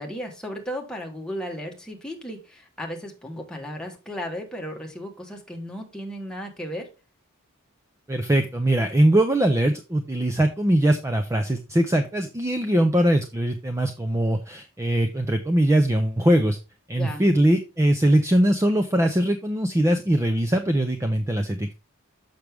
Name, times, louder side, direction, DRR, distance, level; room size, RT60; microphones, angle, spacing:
voice 1, 0.0-6.9 17.0-17.2, equal, 5° left, 1.3 m, -35 dB
voice 2, 8.1-16.6 16.9-21.7, right 1 dB, 15° right, 0.5 m, -21 dB
6.4 x 6.0 x 3.3 m
head